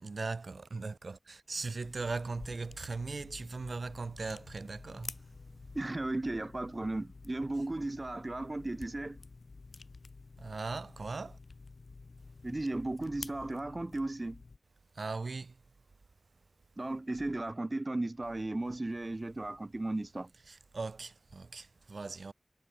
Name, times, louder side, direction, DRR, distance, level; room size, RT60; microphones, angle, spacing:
voice 1, 0.0-5.1 10.4-11.4 15.0-15.5 20.5-22.3, right 3 dB, 80° right, 1.2 m, -39 dB
sound 1, 1.8-14.6, left 3 dB, 75° left, 3.4 m, -50 dB
voice 2, 5.7-9.2 12.4-14.4 16.8-20.3, right 2 dB, 40° right, 0.8 m, -35 dB
wide cardioid pair, 50°, 0 cm